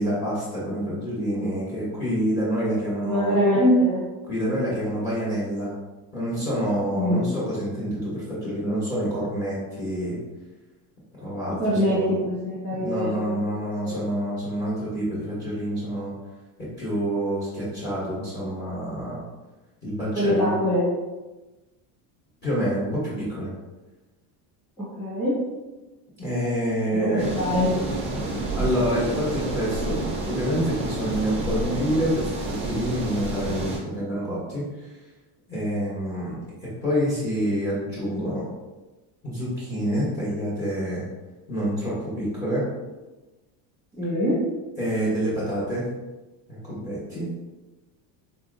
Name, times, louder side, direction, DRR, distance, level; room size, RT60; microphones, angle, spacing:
voice 1, 0.0-3.4 4.3-5.7 6.1-10.2 11.2-12.2 12.8-16.1 16.6-19.2 19.8-20.5 22.4-23.5 26.2-27.3 28.5-35.0 35.5-38.5 39.2-41.0 41.5-42.7 44.8-45.8 46.5-47.3, equal, 25° left, -9 dB, 0.9 m, -27 dB
voice 2, 3.0-4.1 6.9-7.3 11.6-13.3 13.8-14.1 20.1-21.0 24.8-25.4 26.9-27.8 43.9-44.4, equal, 5° left, -9 dB, 1.1 m, -23 dB
sound 1, 27.2-33.8, right 2 dB, 15° right, 0.4 m, -29 dB
4.0 x 2.7 x 2.5 m, 1.1 s
cardioid pair, 170°, 48 cm